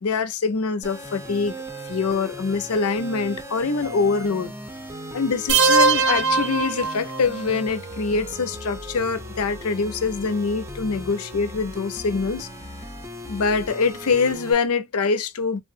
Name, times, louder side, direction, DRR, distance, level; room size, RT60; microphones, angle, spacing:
voice 1, 0.0-4.5 5.1-12.5 13.3-15.6, left 4 dB, 85° left, 0.6 m, -24 dB
sound 1, 0.8-14.5, right 1 dB, 15° right, 0.6 m, -37 dB
sound 2, 5.5-7.5, right 4 dB, 55° right, 0.5 m, -20 dB
3.3 x 2.0 x 2.6 m
head